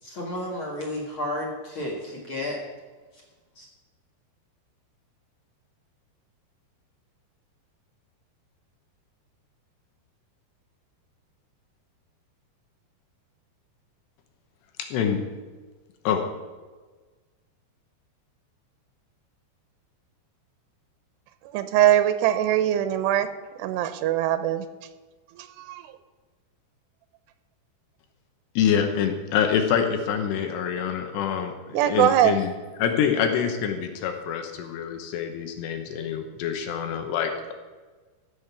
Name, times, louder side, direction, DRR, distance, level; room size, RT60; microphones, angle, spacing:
voice 1, 0.0-2.6 3.6-3.7, left 1 dB, 45° left, -2 dB, 1.9 m, -32 dB
voice 2, 14.8-15.2 16.0-16.2 28.6-32.5 32.8-37.5, left 8 dB, 80° left, 5 dB, 3.2 m, -26 dB
voice 3, 21.5-23.3 23.6-24.6 25.7-25.8 31.7-32.3, right 12 dB, 80° right, 11 dB, 2.8 m, -21 dB
15.0 x 6.6 x 7.0 m, 1.3 s
omnidirectional pair, 4.9 m